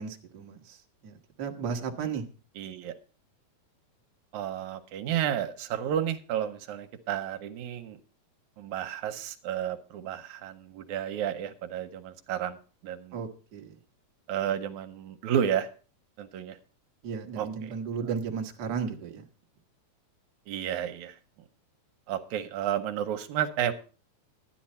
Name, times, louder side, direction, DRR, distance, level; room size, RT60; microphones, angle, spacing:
voice 1, 0.0-2.2 13.1-13.7 17.0-19.2, right 6 dB, 50° right, 3 dB, 1.4 m, -35 dB
voice 2, 2.6-2.9 4.3-8.0 8.6-12.6 12.8-13.2 14.3-15.7 16.2-16.6 17.4-17.7 20.5-21.2 22.1-23.7, right 10 dB, 80° right, 8 dB, 2.2 m, -31 dB
11.5 x 10.0 x 4.2 m, 0.36 s
omnidirectional pair, 3.4 m